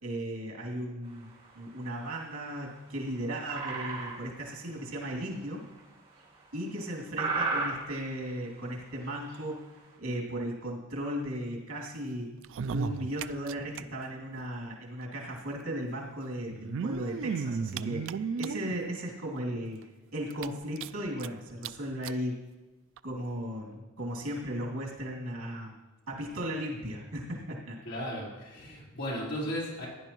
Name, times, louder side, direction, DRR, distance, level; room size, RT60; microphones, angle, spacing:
voice 1, 0.0-1.3 1.5-5.6 6.5-9.6 10.0-12.3 12.7-19.8 20.1-22.4 23.0-25.7 26.1-27.8, equal, 85° right, -2 dB, 2.8 m, -36 dB
sound 1, 1.0-9.9, right 3 dB, 25° right, 4.3 m, -36 dB
sound 2, 12.4-13.8 14.1-14.2 14.4-14.5 15.5-15.6 16.5-18.8 19.4-19.5 19.8-19.9 20.3-21.3 21.6-21.7 22.0-22.2 23.0-23.1, right 5 dB, 60° right, 0.3 m, -34 dB
voice 2, 27.8-29.9, equal, 55° left, -6 dB, 4.5 m, -35 dB
16.0 x 10.5 x 3.1 m, 1.2 s
head